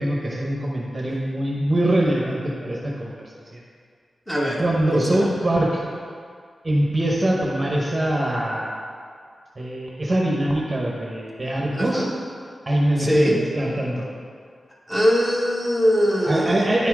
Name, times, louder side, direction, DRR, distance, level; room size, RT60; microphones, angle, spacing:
voice 1, 0.0-3.1 3.5-3.6 4.6-5.8 6.6-8.7 9.6-12.1 12.7-14.1 16.3-16.9, right 1 dB, 25° right, -2 dB, 0.9 m, -23 dB
voice 2, 4.3-4.6 4.9-5.3 11.7-12.1 13.0-13.4 14.9-16.7, equal, 10° left, -4 dB, 1.2 m, -21 dB
9.6 x 4.2 x 4.8 m, 2.1 s
wide cardioid pair, 130°, 0 cm